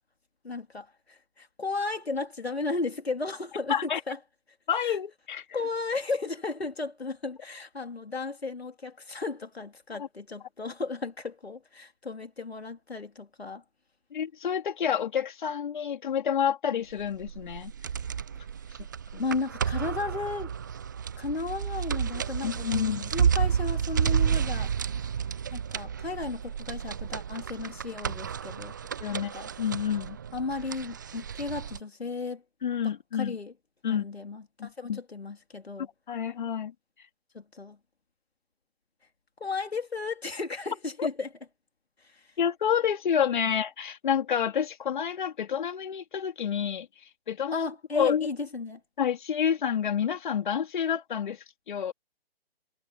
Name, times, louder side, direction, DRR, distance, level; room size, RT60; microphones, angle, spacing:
voice 1, 0.4-4.2 4.8-5.0 5.5-13.6 19.2-20.5 21.2-24.7 25.5-28.8 29.1-29.5 30.3-32.4 32.8-33.5 33.9-35.9 37.3-37.8 39.4-41.3 42.0-42.3 47.5-48.8, left 3 dB, 85° left, 3.5 m, -34 dB
voice 2, 3.7-4.0 4.7-5.4 10.0-10.1 14.1-17.7 19.1-19.2 22.4-23.1 29.0-29.3 29.6-30.2 32.6-33.4 33.8-34.0 34.6-35.0 36.1-36.7 41.0-41.1 42.4-46.9 47.3-47.7 47.9-48.3 49.0-51.9, left 8 dB, 50° left, 3.7 m, -29 dB
sound 1, 17.0-31.8, right 7 dB, 20° right, 0.4 m, -31 dB
figure-of-eight pair, 140°, 31 cm